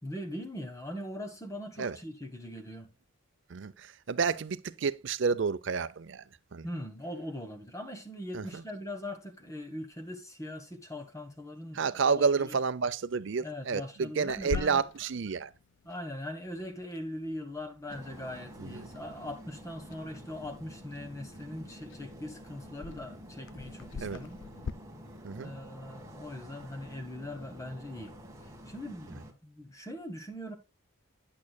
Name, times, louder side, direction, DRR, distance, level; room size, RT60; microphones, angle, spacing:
voice 1, 0.0-2.9 6.6-12.5 13.4-14.9 15.8-24.4 25.4-28.1 28.7-30.6, left 1 dB, 15° left, 1.2 m, -41 dB
voice 2, 3.5-6.2 6.5-6.7 8.3-8.6 11.7-15.5 18.6-18.9 24.0-24.2 25.2-25.5, right 5 dB, 55° right, 0.5 m, -30 dB
Clock, 14.3-24.7, left 5 dB, 55° left, 0.3 m, -45 dB
sound 1, 17.9-29.3, equal, 15° right, 1.3 m, -49 dB
9.6 x 8.5 x 2.2 m
head